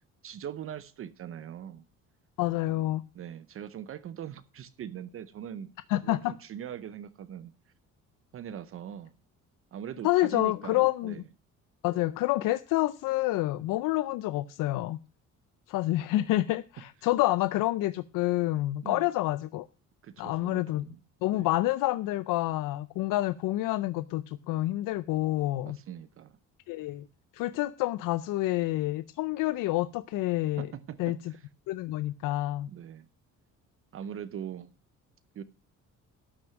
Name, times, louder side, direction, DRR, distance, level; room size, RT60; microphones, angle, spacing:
voice 1, 0.2-1.8 3.1-5.7 6.0-7.5 8.3-9.1 9.7-11.2 18.8-19.1 20.0-21.0 21.3-21.5 25.7-26.4 30.6-31.4 32.7-33.1 33.9-34.7 35.3-35.4, right 9 dB, 45° right, 0.7 m, -41 dB
voice 2, 2.4-3.0 5.9-6.3 10.0-11.1 11.8-15.0 15.7-19.7 20.2-20.8 21.2-25.8 26.7-27.0 27.3-30.7 31.0-31.3 31.7-32.7, left 17 dB, 85° left, 0.6 m, -28 dB
12.5 x 6.1 x 5.9 m
cardioid pair, 160°, 31 cm